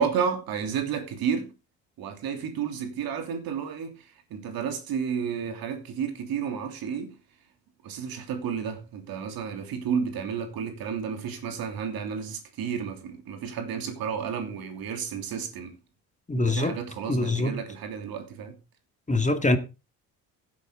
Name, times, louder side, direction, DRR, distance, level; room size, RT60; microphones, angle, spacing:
voice 1, 0.0-1.5 2.0-3.9 4.3-7.1 7.8-15.7 16.4-18.5, right 7 dB, 75° right, 3.0 m, -31 dB
voice 2, 16.3-16.8 17.1-17.6 19.1-19.6, left 2 dB, 20° left, 2.2 m, -24 dB
15.5 x 8.2 x 3.7 m
supercardioid pair, 65°, 36 cm